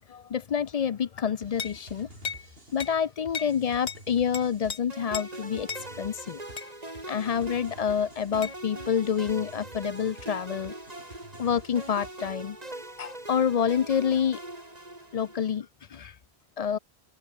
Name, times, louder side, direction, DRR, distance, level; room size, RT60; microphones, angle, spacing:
voice 1, 0.0-2.1 2.7-5.7 6.0-6.4 7.1-10.7 11.4-12.6 13.0-14.4 15.1-16.2 16.6-16.8, left 7 dB, 50° left, 0.5 m, -28 dB
sound 1, 1.4-12.5, right 1 dB, 65° right, 6.5 m, -51 dB
sound 2, 1.6-1.8 2.2-2.5 2.8-3.0 3.3-3.6 3.9-4.0 4.3-4.8 5.1-5.3 5.7-5.9 6.6-6.7 8.4-8.6, left 6 dB, 70° left, 1.5 m, -35 dB
sound 3, 4.9-15.6, right 1 dB, 40° right, 3.9 m, -42 dB
omnidirectional pair, 1.1 m